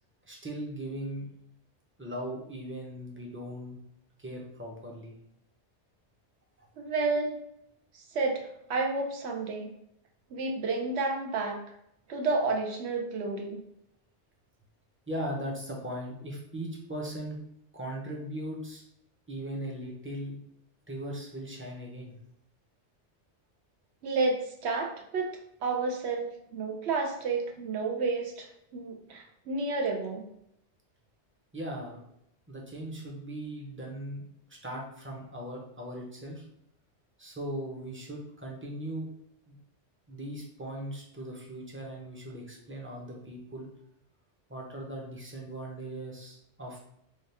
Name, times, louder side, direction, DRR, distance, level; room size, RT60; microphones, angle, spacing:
voice 1, 0.2-1.3 2.0-3.8 4.2-5.1 6.6-6.7 15.1-17.4 17.7-18.8 19.3-20.4 20.9-22.2 31.5-32.0 32.5-34.2 34.6-36.4 37.2-39.1 39.5-39.6 40.1-43.7 44.5-46.8, right 1 dB, 15° right, -2 dB, 0.6 m, -38 dB
voice 2, 6.8-7.4 7.9-9.7 10.3-11.6 12.1-13.6 24.0-25.3 25.6-30.2, right 3 dB, 70° right, 3 dB, 1.0 m, -31 dB
3.5 x 2.3 x 4.2 m, 0.76 s
omnidirectional pair, 1.2 m